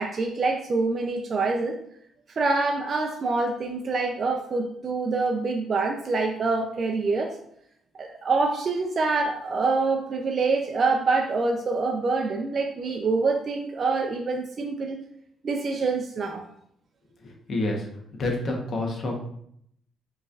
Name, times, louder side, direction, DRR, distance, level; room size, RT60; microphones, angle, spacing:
voice 1, 0.0-1.8 2.4-7.4 7.9-15.0 15.4-16.4, right 3 dB, 45° right, 1 dB, 0.5 m, -26 dB
voice 2, 17.2-17.9 18.2-19.2, left 2 dB, 50° left, 1 dB, 1.0 m, -28 dB
4.9 x 3.1 x 2.4 m, 0.70 s
cardioid pair, 90°, 0 cm